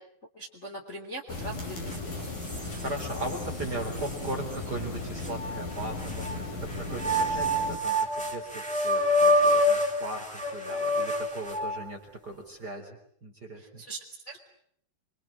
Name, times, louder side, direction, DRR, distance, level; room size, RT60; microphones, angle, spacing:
voice 1, 0.3-2.3 13.6-14.4, right 2 dB, 20° left, 0 dB, 3.2 m, -41 dB
sound 1, 1.3-7.8, left 2 dB, 50° left, 6.7 m, -36 dB
sound 2, 1.9-2.0 2.5-3.4 4.0-4.1 5.2-6.4 6.9-11.9, equal, ahead, 3.0 m, -26 dB
voice 2, 2.8-13.8, right 2 dB, 25° right, 2 dB, 3.9 m, -38 dB
27.5 x 24.5 x 8.5 m, 0.66 s
omnidirectional pair, 4.9 m